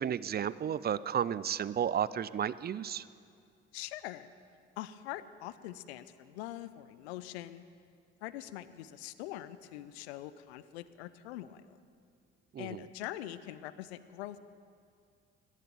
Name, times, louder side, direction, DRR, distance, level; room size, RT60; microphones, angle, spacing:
voice 1, 0.0-3.1 12.5-12.8, right 9 dB, 30° right, 18 dB, 0.5 m, -33 dB
voice 2, 3.7-4.3 4.8-7.6 8.2-11.8 12.6-14.4, left 14 dB, 85° left, 15 dB, 0.6 m, -43 dB
17.0 x 10.5 x 6.9 m, 2.3 s
hypercardioid pair, 55°, 32 cm